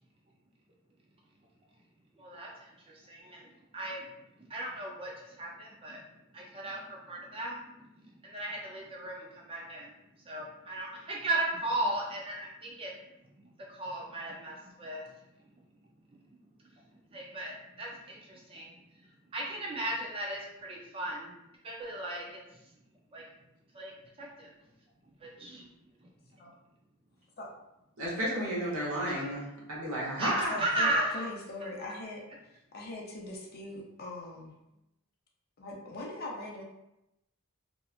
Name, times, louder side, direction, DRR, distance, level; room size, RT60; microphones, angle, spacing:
voice 1, 2.1-4.1 4.4-6.0 6.3-15.1 16.1-21.3 21.6-22.7 23.1-23.3 23.7-24.5 25.2-25.7 26.0-26.4 29.1-29.4 30.2-31.3 31.6-31.7, right 1 dB, 25° right, -2 dB, 0.5 m, -37 dB
voice 2, 28.0-29.4 29.7-30.6, right 1 dB, 75° right, -4 dB, 0.9 m, -32 dB
voice 3, 30.2-32.2 32.7-34.5 35.6-36.6, left 2 dB, 45° left, -1 dB, 0.5 m, -41 dB
2.8 x 2.3 x 2.3 m, 0.88 s
head